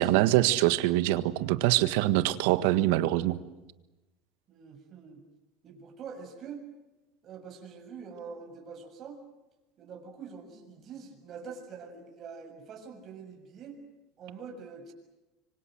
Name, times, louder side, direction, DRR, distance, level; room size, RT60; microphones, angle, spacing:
voice 1, 0.0-3.4, right 16 dB, 75° right, 13 dB, 1.6 m, -24 dB
voice 2, 4.5-5.2 5.6-6.6 7.2-9.2 9.8-13.8 14.2-14.9, right 5 dB, 40° right, 4 dB, 6.9 m, -45 dB
26.0 x 25.0 x 7.9 m, 1.0 s
supercardioid pair, 130°, 0 cm